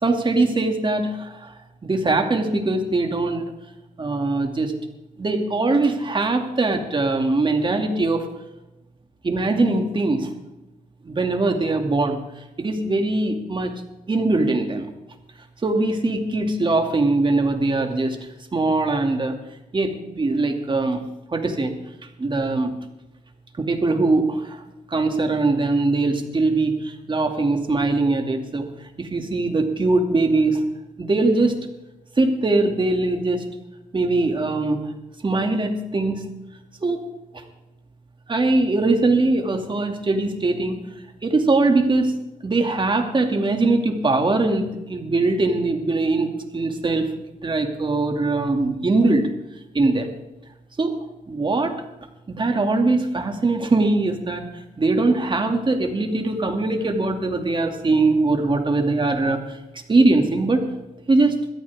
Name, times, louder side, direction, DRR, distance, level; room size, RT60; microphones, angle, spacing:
voice 1, 0.0-3.5 4.0-4.8 5.2-8.3 9.2-10.3 11.0-12.2 12.6-13.7 14.1-14.9 15.6-18.2 18.5-19.4 19.7-21.0 21.3-21.8 22.2-22.7 23.6-24.6 24.9-28.6 29.0-30.7 31.0-31.6 32.2-33.4 33.9-34.9 35.2-36.3 36.8-37.1 38.3-40.8 41.2-42.1 42.4-47.1 47.4-49.3 49.7-50.1 50.8-51.0 51.3-51.7 52.3-59.6 59.9-60.7 61.1-61.4, right 2 dB, 35° right, 4 dB, 2.6 m, -21 dB
22.0 x 14.0 x 3.7 m, 0.97 s
cardioid pair, 80°, 15 cm